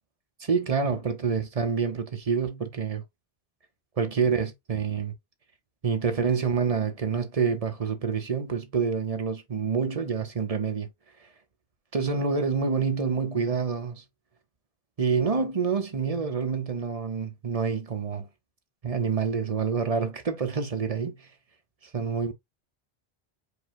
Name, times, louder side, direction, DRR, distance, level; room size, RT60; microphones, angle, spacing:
voice 1, 0.4-3.0 4.0-5.1 5.8-10.9 11.9-14.0 15.0-18.3 18.8-21.3 21.9-22.3, right 5 dB, 35° right, 0.9 m, -27 dB
5.0 x 2.3 x 4.4 m
omnidirectional pair, 1.1 m